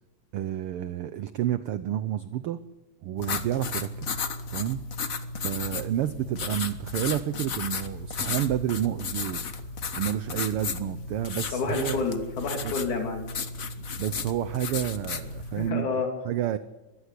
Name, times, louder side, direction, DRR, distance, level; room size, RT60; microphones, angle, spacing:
voice 1, 0.3-2.6 3.0-4.2 4.5-4.8 5.4-9.4 10.0-12.0 12.6-12.7 14.0-15.9 16.2-16.6, right 11 dB, 70° right, 13 dB, 1.4 m, -30 dB
sound 1, 3.2-15.7, left 4 dB, 45° left, 1.1 m, -34 dB
voice 2, 11.5-13.3 15.5-16.1, left 4 dB, 85° left, 4 dB, 4.3 m, -29 dB
22.5 x 16.0 x 8.3 m, 1.1 s
omnidirectional pair, 3.4 m